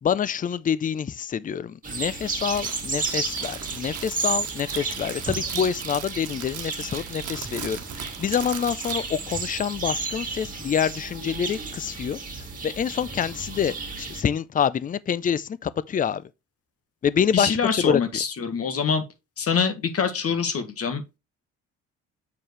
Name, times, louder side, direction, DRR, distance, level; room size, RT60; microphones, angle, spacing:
voice 1, 0.0-12.2 12.6-16.2 17.0-18.0, left 8 dB, 30° left, 0.4 m, -26 dB
sound 1, 1.8-14.2, right 4 dB, 25° right, 2.1 m, -33 dB
Crackle, 2.3-9.4, right 10 dB, 80° right, 1.2 m, -39 dB
voice 2, 17.3-19.0 19.4-21.2, left 6 dB, 50° left, 1.5 m, -25 dB
7.5 x 4.5 x 3.1 m
cardioid pair, 90°, 30 cm